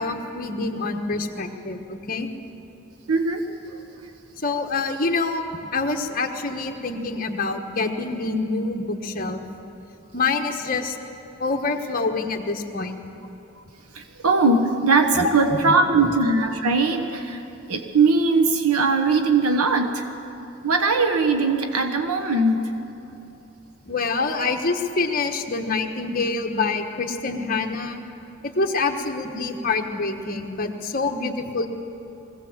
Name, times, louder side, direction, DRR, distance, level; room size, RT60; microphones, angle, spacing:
voice 1, 0.0-2.3 4.4-9.4 10.1-10.9 11.4-12.9 15.2-16.1 23.9-28.0 28.4-31.7, left 3 dB, 40° left, 4 dB, 1.2 m, -26 dB
voice 2, 3.1-3.5 13.9-17.4 17.7-20.1 20.6-22.7, right 3 dB, 85° right, 5 dB, 1.2 m, -20 dB
21.5 x 16.5 x 7.4 m, 2.9 s
head